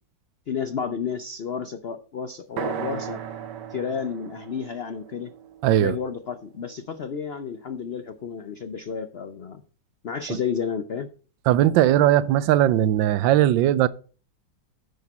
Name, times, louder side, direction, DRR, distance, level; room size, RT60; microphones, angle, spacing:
voice 1, 0.5-3.2 3.7-5.3 5.8-9.6 10.0-11.1, left 6 dB, 75° left, 0.5 m, -31 dB
sound 1, 2.6-6.5, right 9 dB, 70° right, 1.6 m, -36 dB
voice 2, 5.6-5.9 10.3-10.4 11.5-13.9, right 12 dB, 85° right, 1.3 m, -19 dB
10.5 x 6.5 x 4.1 m
omnidirectional pair, 2.0 m